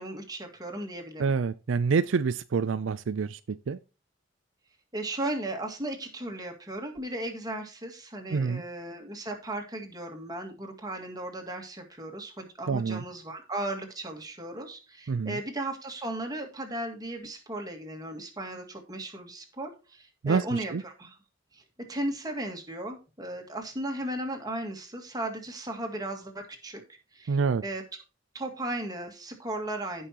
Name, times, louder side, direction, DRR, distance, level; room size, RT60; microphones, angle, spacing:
voice 1, 0.0-1.3 4.9-21.1 21.5-27.8 28.3-30.1, right 1 dB, 20° right, 2.0 m, -36 dB
voice 2, 1.2-3.8 8.3-8.6 12.7-13.0 15.1-15.4 20.2-20.8 27.3-27.6, right 5 dB, 70° right, 0.4 m, -27 dB
16.5 x 5.6 x 2.9 m
head